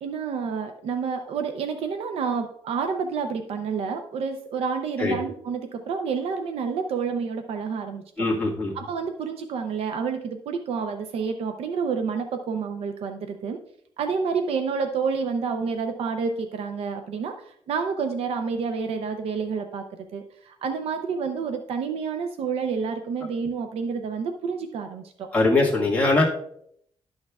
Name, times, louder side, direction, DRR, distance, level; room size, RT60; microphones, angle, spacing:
voice 1, 0.0-8.3 8.7-13.6 14.0-25.3, right 5 dB, 80° right, 6 dB, 0.6 m, -29 dB
voice 2, 8.2-8.7 25.3-26.2, left 2 dB, 15° left, -5 dB, 1.5 m, -21 dB
11.5 x 6.4 x 2.3 m, 0.68 s
wide cardioid pair, 180°, 10 cm